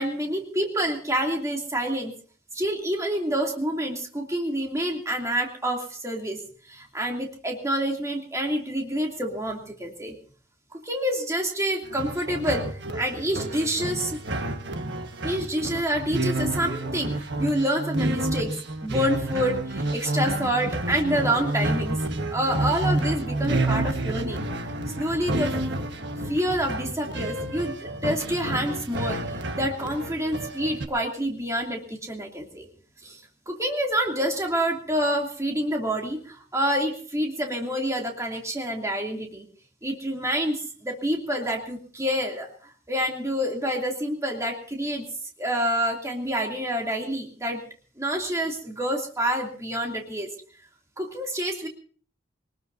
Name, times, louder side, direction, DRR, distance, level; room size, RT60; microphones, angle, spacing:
voice 1, 0.0-2.1 2.5-10.1 10.7-14.2 15.2-18.5 18.8-22.0 22.3-24.4 25.0-25.6 26.2-29.2 29.6-32.7 33.0-33.2 33.5-39.5 39.8-45.1 45.4-47.6 48.0-50.3 51.0-51.7, equal, 15° right, 0 dB, 2.8 m, -27 dB
sound 1, 11.8-30.9, right 2 dB, 65° right, 1.4 m, -29 dB
23.5 x 19.5 x 2.7 m, 0.41 s
head